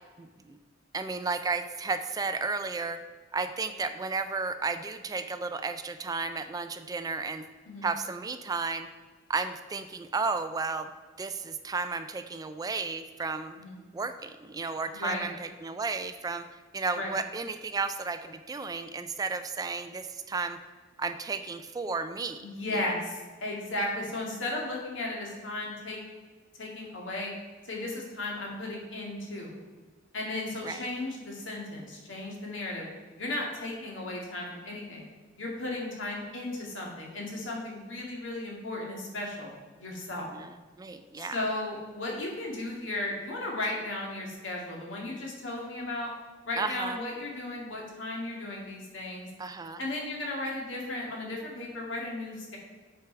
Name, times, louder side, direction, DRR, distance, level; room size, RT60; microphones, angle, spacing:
voice 1, 0.2-0.6 0.9-3.0 3.3-7.4 7.8-8.9 9.3-10.9 11.2-13.5 13.9-16.4 16.7-20.6 21.0-22.4 30.6-30.8 40.4-40.5 40.8-41.4 46.6-47.0 49.4-49.8, right 4 dB, 20° right, 10 dB, 0.3 m, -33 dB
voice 2, 13.6-13.9 14.9-15.3 16.9-17.1 22.4-26.0 26.6-27.3 27.6-29.6 30.1-32.9 33.2-35.1 35.4-39.5 39.8-40.3 41.2-46.1 46.5-49.3 49.8-52.6, left 2 dB, 75° left, -2 dB, 2.0 m, -35 dB
8.4 x 4.7 x 4.5 m, 1.4 s
head